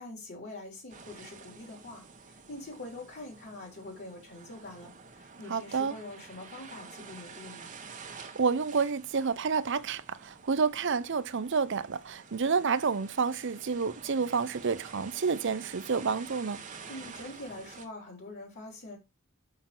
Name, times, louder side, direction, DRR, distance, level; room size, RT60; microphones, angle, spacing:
voice 1, 0.0-7.7 16.9-19.0, left 2 dB, 55° left, 3.9 m, -44 dB
sound 1, 0.9-17.9, right 5 dB, 40° right, 1.2 m, -49 dB
voice 2, 5.5-6.0 8.3-16.6, right 5 dB, 60° right, 0.6 m, -29 dB
5.7 x 5.7 x 6.0 m
head